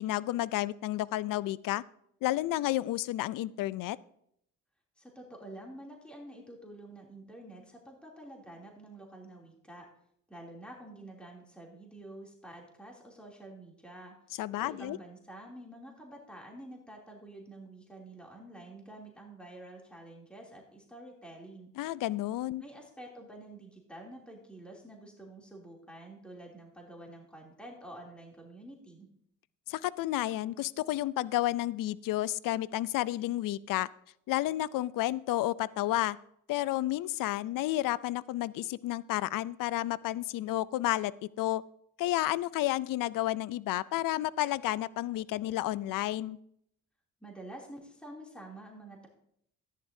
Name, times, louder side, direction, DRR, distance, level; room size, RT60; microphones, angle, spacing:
voice 1, 0.0-1.8 2.2-4.0 14.4-15.0 21.8-22.6 29.7-33.9 34.3-36.2 36.5-41.1 41.4-41.6 42.0-46.4, left 15 dB, 65° left, 19 dB, 0.5 m, -31 dB
voice 2, 5.0-9.9 10.3-14.1 14.6-21.7 22.6-29.1 47.2-49.1, right 1 dB, 5° left, -1 dB, 2.9 m, -48 dB
14.0 x 10.5 x 2.7 m, 0.71 s
supercardioid pair, 65°, 35 cm